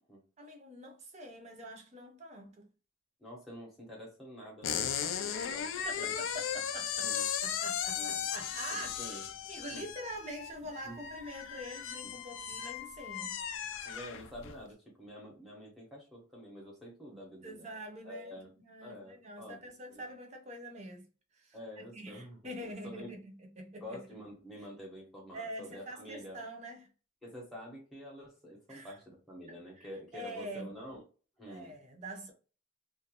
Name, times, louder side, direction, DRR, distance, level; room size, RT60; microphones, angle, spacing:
voice 1, 0.4-2.7 5.0-5.4 5.7-7.1 7.4-13.4 17.4-21.1 21.3-21.6 21.9-24.0 25.3-26.9 28.7-29.0 29.5-30.7 31.4-32.3, right 1 dB, 35° right, 0.6 m, -45 dB
voice 2, 3.2-5.7 6.0-6.1 7.0-7.3 7.9-8.3 8.7-9.2 9.7-9.9 10.8-11.0 12.0-12.1 13.9-17.7 18.0-18.5 18.8-19.6 19.9-20.1 21.5-23.1 23.7-26.4 27.2-31.0 31.4-31.7, equal, ahead, 0.7 m, -48 dB
sound 1, 4.6-14.6, left 8 dB, 75° left, 0.4 m, -37 dB
2.4 x 2.1 x 2.8 m
head